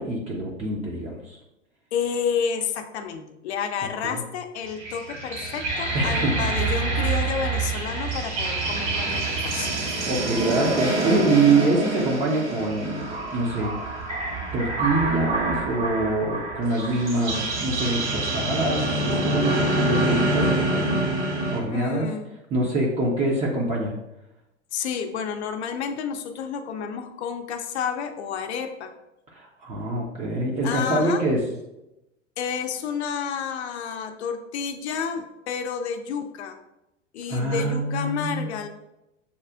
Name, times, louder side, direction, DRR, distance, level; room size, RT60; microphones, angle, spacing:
voice 1, 0.0-1.4 4.0-4.2 5.9-6.5 10.0-13.7 14.5-21.0 21.5-22.1 22.5-23.9 29.3-31.4 37.3-38.5, right 2 dB, 20° right, -3 dB, 0.5 m, -25 dB
voice 2, 1.9-9.7 21.7-22.3 24.7-28.9 30.6-31.2 32.4-36.6 37.1-38.7, left 7 dB, 60° left, 6 dB, 0.6 m, -30 dB
sound 1, 4.7-21.6, right 2 dB, 65° right, 1.3 m, -26 dB
6.8 x 2.4 x 2.3 m, 0.92 s
figure-of-eight pair, 95°, 38 cm